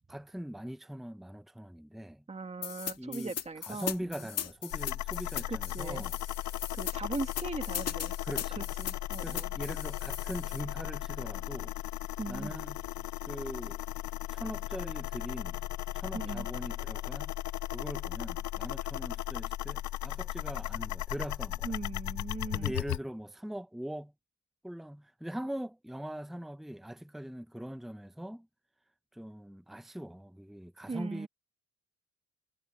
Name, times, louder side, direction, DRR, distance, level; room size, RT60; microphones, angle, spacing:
voice 1, 0.1-2.2 3.0-3.3 3.6-6.2 8.2-8.7 9.2-11.7 12.3-12.8 13.3-13.8 14.3-15.6 15.9-17.4 17.7-21.8 22.5-24.1 24.6-28.5 29.1-31.3, equal, ahead, 0.9 m, -41 dB
voice 2, 2.3-4.3 5.5-6.0 6.7-8.2 8.6-9.5 12.2-12.5 16.1-16.5 21.6-22.7 30.9-31.3, right 3 dB, 20° right, 2.0 m, -39 dB
sound 1, 2.6-10.6, left 8 dB, 55° left, 2.1 m, -39 dB
sound 2, 4.7-23.0, left 15 dB, 70° left, 0.6 m, -36 dB
cardioid pair, 90°, 30 cm